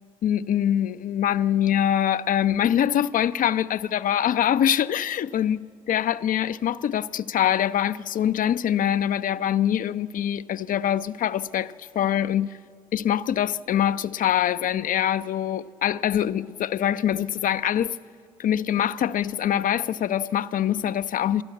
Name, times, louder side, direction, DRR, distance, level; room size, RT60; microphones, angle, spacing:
voice 1, 0.2-12.6 12.9-18.0 18.4-21.4, left 10 dB, 50° left, 0.6 m, -24 dB
27.5 x 12.0 x 8.5 m
hypercardioid pair, 50°, 17 cm